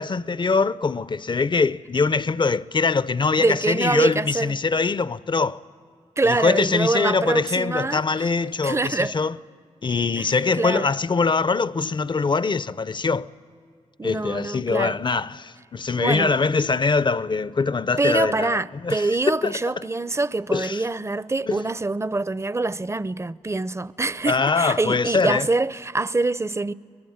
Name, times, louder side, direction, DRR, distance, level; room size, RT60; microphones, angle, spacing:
voice 1, 0.0-5.6 6.2-9.4 9.8-13.3 14.0-19.6 20.5-20.8 21.5-21.6 24.3-25.5, left 4 dB, 40° left, 0.6 m, -23 dB
voice 2, 3.4-4.5 6.2-8.3 8.6-9.1 10.2-10.9 14.0-15.0 16.0-16.3 18.0-26.7, right 3 dB, 20° right, 0.6 m, -25 dB
23.5 x 21.5 x 8.7 m
cardioid pair, 45°, 12 cm